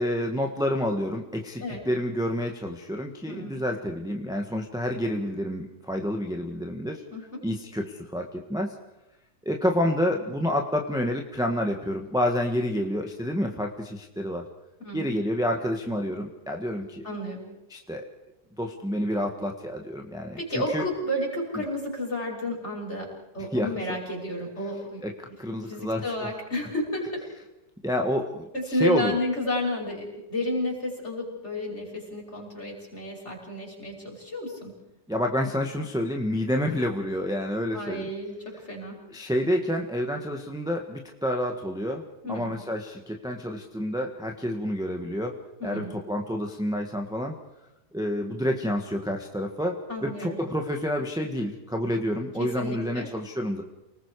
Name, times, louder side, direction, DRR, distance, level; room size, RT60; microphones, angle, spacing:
voice 1, 0.0-7.0 7.4-8.8 9.4-14.4 14.9-17.1 17.7-18.1 18.6-20.8 23.5-23.7 25.0-26.3 27.8-29.2 35.1-38.1 39.1-45.4 45.6-47.4 47.9-53.6, equal, ahead, 2 dB, 1.4 m, -29 dB
voice 2, 3.3-3.6 7.1-7.4 14.8-15.1 17.0-17.4 20.4-23.1 23.3-25.0 25.7-27.2 28.5-34.7 37.7-39.0 42.2-42.6 45.6-46.0 49.9-50.4 52.4-53.1, left 1 dB, 40° left, -1 dB, 6.3 m, -31 dB
29.5 x 20.0 x 4.9 m, 0.94 s
omnidirectional pair, 1.8 m